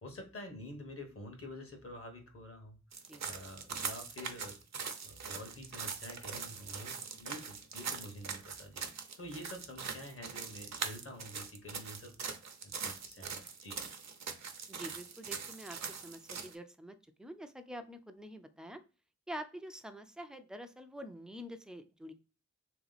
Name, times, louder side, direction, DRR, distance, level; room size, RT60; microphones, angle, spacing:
voice 1, 0.0-2.8 3.2-4.6 5.0-8.8 9.2-12.4 12.6-13.8, left 1 dB, 50° left, 4 dB, 1.1 m, -48 dB
sound 1, 2.9-16.5, right 6 dB, 65° right, 0.6 m, -42 dB
voice 2, 14.7-18.8 19.3-22.1, equal, ahead, 8 dB, 0.4 m, -46 dB
3.4 x 2.9 x 3.9 m, 0.34 s
wide cardioid pair, 135°, 29 cm